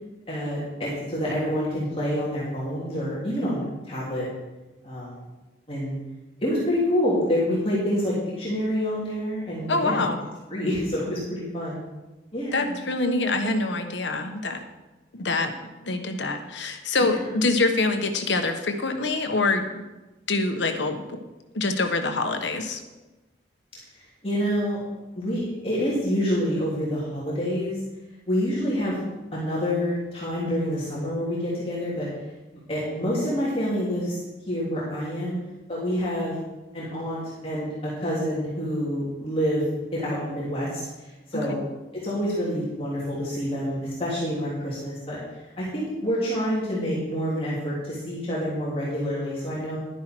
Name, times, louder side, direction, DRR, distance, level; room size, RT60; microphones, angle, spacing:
voice 1, 0.3-4.3 4.8-5.2 5.7-6.0 6.4-10.0 10.5-11.8 12.3-12.8 17.0-17.3 24.2-24.8 25.1-27.7 28.3-29.0 29.3-32.1 32.7-34.1 34.5-35.4 35.7-36.3 36.7-39.6 39.9-40.8 41.3-41.5 42.0-45.2 45.6-49.8, equal, 30° left, -7 dB, 3.0 m, -27 dB
voice 2, 9.7-10.2 12.5-14.6 15.1-15.5 15.8-19.8 20.3-21.2 21.5-22.8 41.5-41.6, left 3 dB, 85° left, 6 dB, 1.2 m, -25 dB
11.5 x 10.0 x 4.6 m, 1.1 s
head